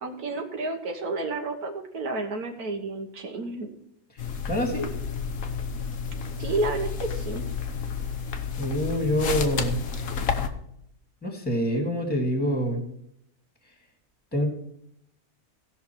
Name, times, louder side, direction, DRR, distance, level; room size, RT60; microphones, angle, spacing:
voice 1, 0.0-3.7 6.4-7.4, right 2 dB, 85° right, 3 dB, 1.8 m, -31 dB
sound 1, 4.2-10.5, left 6 dB, 70° left, 1.4 m, -31 dB
voice 2, 4.5-4.9 8.6-9.8 11.2-12.8 14.3-14.5, equal, 5° left, 3 dB, 2.0 m, -26 dB
17.0 x 5.9 x 4.5 m, 0.73 s
omnidirectional pair, 1.6 m